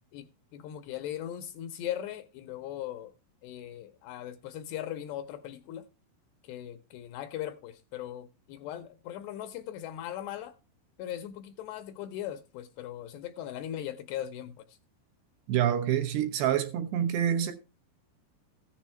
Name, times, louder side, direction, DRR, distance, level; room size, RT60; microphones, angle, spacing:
voice 1, 0.1-3.1 3.4-5.9 6.4-10.6 11.0-14.8, left 11 dB, 80° left, 2.5 m, -39 dB
voice 2, 15.5-17.5, right 10 dB, 75° right, 2.8 m, -27 dB
14.5 x 7.2 x 4.3 m
omnidirectional pair, 5.4 m